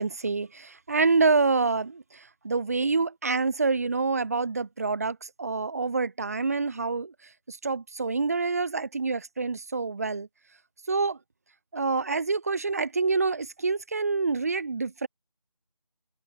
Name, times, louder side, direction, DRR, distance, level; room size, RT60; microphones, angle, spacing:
voice 1, 0.0-7.1 7.5-10.3 10.9-11.2 11.7-15.1, right 4 dB, 25° right, 7.7 m, -27 dB
open air
figure-of-eight pair, 180°, 20 cm